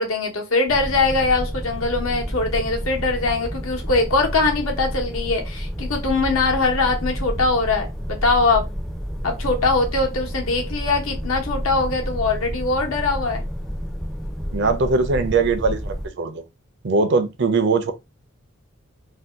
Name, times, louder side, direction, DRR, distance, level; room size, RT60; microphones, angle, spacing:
voice 1, 0.0-8.6 9.2-13.4, left 3 dB, 80° left, 1.0 m, -22 dB
sound 1, 0.7-16.1, equal, ahead, 0.4 m, -30 dB
voice 2, 14.5-16.4 16.8-17.9, right 4 dB, 55° right, 0.5 m, -21 dB
2.7 x 2.2 x 3.5 m
head